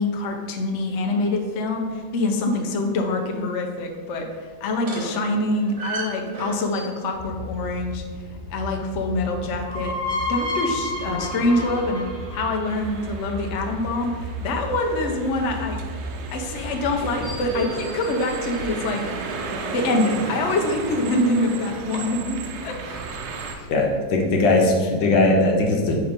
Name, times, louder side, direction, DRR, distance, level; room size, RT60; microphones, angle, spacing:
voice 1, 0.0-8.0 8.5-12.0 12.3-15.8 16.3-19.1 19.7-22.7 23.5-23.7, left 2 dB, 60° left, 2 dB, 0.7 m, -25 dB
sound 1, 4.8-7.1 9.3-13.4 17.0-19.2, left 1 dB, 40° right, 1.4 m, -32 dB
sound 2, 7.1-17.7, right 1 dB, 20° left, 0.8 m, -36 dB
sound 3, 12.7-23.6, right 4 dB, 75° right, 1.3 m, -34 dB
voice 2, 23.7-26.0, left 2 dB, 80° left, 1 dB, 1.6 m, -19 dB
5.7 x 3.3 x 5.1 m, 1.5 s
omnidirectional pair, 2.0 m